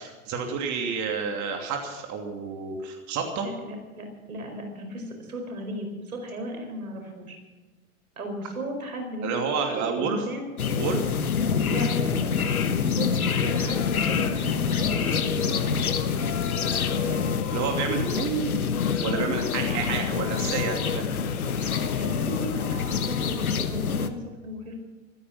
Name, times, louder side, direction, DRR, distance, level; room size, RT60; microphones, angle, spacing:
voice 1, 0.0-3.5 9.2-10.2 10.7-11.1 17.5-18.7 19.0-21.0, right 5 dB, 40° right, 3 dB, 2.8 m, -29 dB
voice 2, 3.4-7.4 8.2-10.5 11.6-12.5 12.9-15.6 17.0-17.3 19.6-19.8 21.6-24.7, equal, 85° right, 4 dB, 4.8 m, -36 dB
sound 1, 10.6-24.1, left 6 dB, 90° left, 1.3 m, -26 dB
Singing, 13.3-23.5, left 8 dB, 35° left, 2.2 m, -41 dB
15.5 x 14.5 x 5.9 m, 1.3 s
hypercardioid pair, 100°, 42 cm